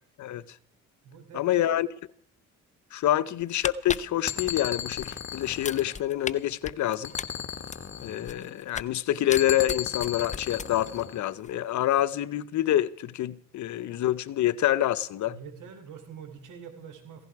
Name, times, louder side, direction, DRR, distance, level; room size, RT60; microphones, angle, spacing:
voice 1, 0.2-0.6 1.3-1.9 2.9-7.1 8.0-15.4, left 12 dB, 70° left, 0.8 m, -27 dB
voice 2, 1.0-1.7 3.2-3.3 15.2-17.3, right 7 dB, 85° right, 3.2 m, -45 dB
sound 1, 3.4-5.1 5.5-6.3 6.6-9.0 9.3-11.0 11.3-11.5, left 6 dB, 25° left, 0.6 m, -36 dB
sound 2, 4.3-6.5 7.0-8.6 9.4-11.3, left 8 dB, 40° left, 1.8 m, -36 dB
16.0 x 16.0 x 4.7 m
cardioid pair, 90°, 30 cm